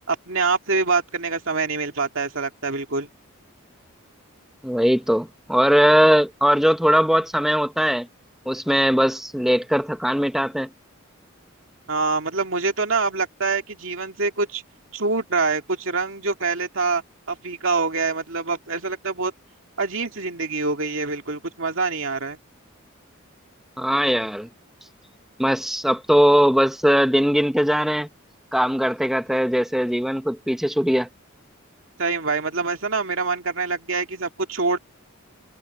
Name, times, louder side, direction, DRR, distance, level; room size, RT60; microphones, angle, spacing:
voice 1, 0.1-3.1 11.9-14.6 14.9-17.0 17.3-19.3 19.8-22.4 32.0-34.8, right 4 dB, 60° right, 2.4 m, -25 dB
voice 2, 4.6-8.1 8.5-10.7 23.8-24.5 25.4-28.1 28.5-31.1, equal, ahead, 0.8 m, -20 dB
head